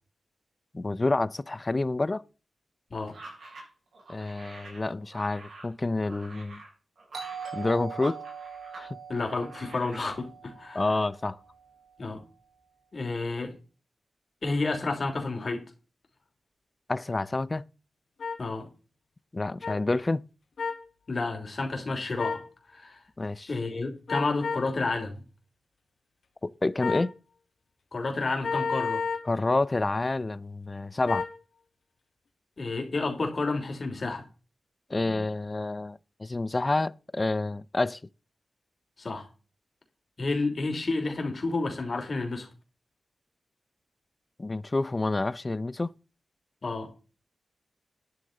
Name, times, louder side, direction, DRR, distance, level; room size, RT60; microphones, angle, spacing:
voice 1, 0.7-2.2 4.1-6.6 7.5-8.2 8.7-9.0 10.7-11.4 16.9-17.6 19.3-20.2 23.2-23.5 26.4-27.1 29.3-31.2 34.9-38.0 44.4-45.9, left 2 dB, 25° left, 0.5 m, -28 dB
sound 1, 3.1-8.9 9.2-10.1, right 2 dB, 70° right, 7.3 m, -47 dB
Doorbell, 7.1-11.7, right 6 dB, 85° right, 6.8 m, -42 dB
voice 2, 9.1-10.9 12.0-12.2 12.9-13.5 14.4-15.6 18.4-18.7 21.1-22.4 22.7-23.0 23.5-25.2 27.9-29.0 32.6-34.2 39.0-39.3 40.2-42.5 46.6-46.9, left 3 dB, 40° left, 3.1 m, -30 dB
sound 2, 18.2-18.4 19.6-19.8 20.6-20.8 22.2-22.5 24.1-24.7 26.8-27.1 28.4-29.3 31.1-31.4, left 5 dB, 70° left, 2.3 m, -31 dB
12.5 x 9.8 x 3.9 m
wide cardioid pair, 125°, 0 cm